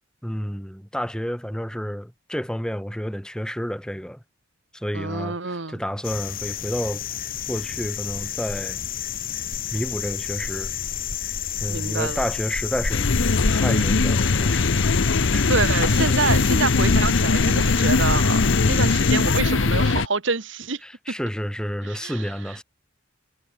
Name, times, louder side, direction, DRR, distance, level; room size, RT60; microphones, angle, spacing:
voice 1, 0.2-4.2 4.7-7.0 7.5-8.8 9.7-10.7 11.6-13.1 13.5-14.6 15.3-15.5 16.1-16.2 18.8-19.0 20.8-22.6, equal, 5° left, 5.6 m, -30 dB
voice 2, 4.9-5.8 11.7-12.2 15.5-20.8 21.1-21.2 21.8-22.3, right 4 dB, 65° right, 1.7 m, -27 dB
sound 1, 6.0-19.4, left 7 dB, 45° left, 1.1 m, -29 dB
sound 2, 12.9-20.1, left 3 dB, 70° left, 0.8 m, -20 dB
head